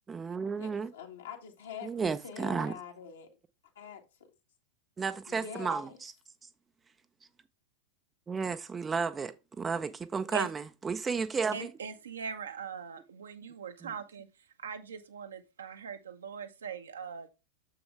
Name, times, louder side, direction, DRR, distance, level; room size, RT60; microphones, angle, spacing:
voice 1, 0.1-0.9 1.8-2.7 5.0-6.1 8.3-11.7 13.8-13.9, right 5 dB, 15° right, 0.6 m, -33 dB
voice 2, 0.6-3.3 3.7-4.3 5.3-6.0, left 6 dB, 65° left, 1.8 m, -45 dB
voice 3, 11.5-14.3 14.6-17.3, right 6 dB, 70° right, 1.0 m, -41 dB
7.1 x 6.6 x 3.3 m
figure-of-eight pair, 90°, 0 cm